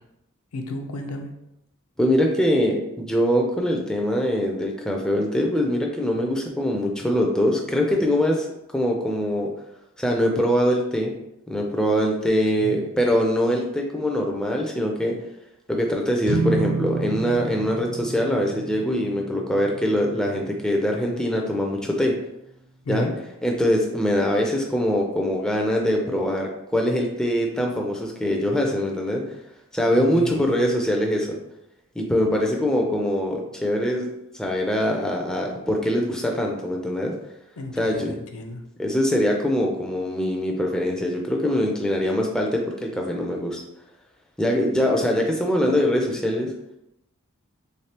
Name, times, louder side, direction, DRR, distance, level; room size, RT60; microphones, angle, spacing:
voice 1, 0.5-1.3 12.6-12.8 22.8-23.1 30.0-30.8 37.6-38.6, left 2 dB, 70° left, 4 dB, 0.5 m, -32 dB
voice 2, 2.0-8.5 8.7-9.5 10.0-11.1 11.5-15.1 15.7-22.1 22.9-23.1 23.4-29.2 29.7-31.4 32.0-34.1 34.3-37.1 37.8-38.1 38.8-43.6 44.4-46.5, equal, 5° left, 0 dB, 0.3 m, -23 dB
sound 1, 16.2-22.7, right 3 dB, 65° right, 0.5 m, -31 dB
3.3 x 3.2 x 2.8 m, 0.85 s
head